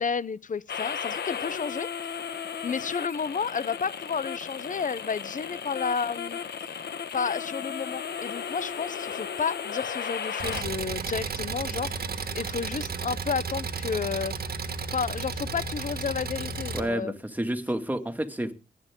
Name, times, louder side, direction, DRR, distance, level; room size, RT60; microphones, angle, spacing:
voice 1, 0.0-1.9 2.6-6.4 7.1-14.3 14.9-17.1, left 6 dB, 50° left, 0.8 m, -31 dB
sound 1, 0.7-10.6, left 7 dB, 85° left, 1.2 m, -35 dB
Engine, 10.4-16.8, right 4 dB, 65° right, 1.5 m, -33 dB
voice 2, 16.7-18.5, right 1 dB, 10° right, 2.2 m, -30 dB
22.5 x 9.2 x 3.7 m
cardioid pair, 70°, 17 cm